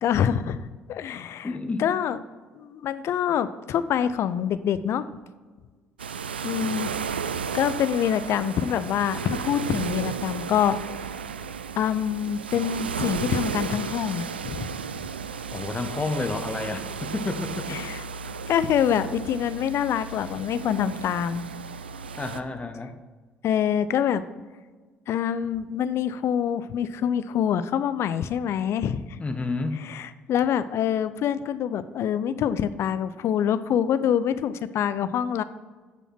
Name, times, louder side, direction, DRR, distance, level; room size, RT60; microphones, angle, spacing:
voice 1, 0.0-1.5 1.8-2.2 2.5-5.0 6.4-6.9 7.5-10.8 11.8-14.7 17.7-18.0 18.5-21.5 23.4-24.2 25.1-29.2 29.8-35.4, left 9 dB, 55° left, 14 dB, 0.6 m, -25 dB
voice 2, 1.4-1.8 15.5-17.8 22.2-23.0 29.2-29.8, left 3 dB, 25° left, 8 dB, 1.2 m, -30 dB
sound 1, 6.0-22.4, right 6 dB, 85° right, 0.4 m, -34 dB
10.5 x 7.0 x 5.9 m, 1.4 s
figure-of-eight pair, 50°, 5 cm